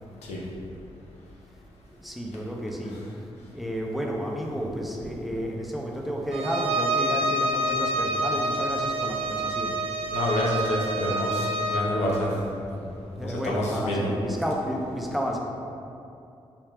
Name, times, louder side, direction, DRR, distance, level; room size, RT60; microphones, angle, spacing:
voice 1, 1.9-3.0 3.5-9.8 13.2-15.4, equal, ahead, -1 dB, 0.5 m, -31 dB
Bowed string instrument, 6.3-11.9, right 1 dB, 65° right, 0.4 m, -27 dB
voice 2, 10.1-12.3 12.7-12.9 13.1-14.1, left 1 dB, 85° left, -4 dB, 0.7 m, -28 dB
4.4 x 2.3 x 3.4 m, 2.6 s
cardioid pair, 65°, 11 cm